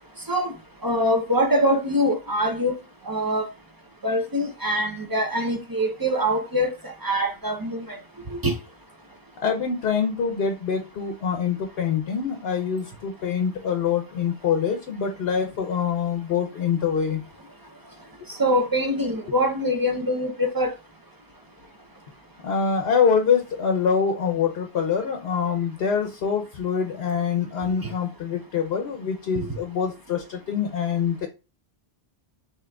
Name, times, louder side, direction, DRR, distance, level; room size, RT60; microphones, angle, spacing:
voice 1, 0.8-2.7 3.1-3.5 4.0-8.0 8.3-8.5 18.3-20.7 27.8-27.9 29.3-29.5, equal, 25° right, 0.5 m, -24 dB
voice 2, 9.4-17.2 22.4-31.3, left 6 dB, 70° left, 0.8 m, -25 dB
5.9 x 2.8 x 2.3 m
omnidirectional pair, 1.1 m